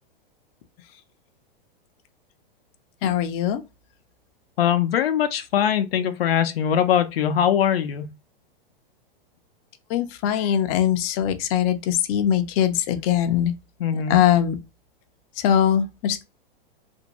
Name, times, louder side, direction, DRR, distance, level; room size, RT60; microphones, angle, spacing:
voice 1, 3.0-3.6 9.9-13.5 13.9-14.6 15.4-16.2, left 10 dB, 40° left, 0.4 m, -21 dB
voice 2, 4.6-8.1 13.8-14.2, left 9 dB, 90° left, 0.5 m, -21 dB
2.5 x 2.2 x 2.8 m
hypercardioid pair, 130°, 29 cm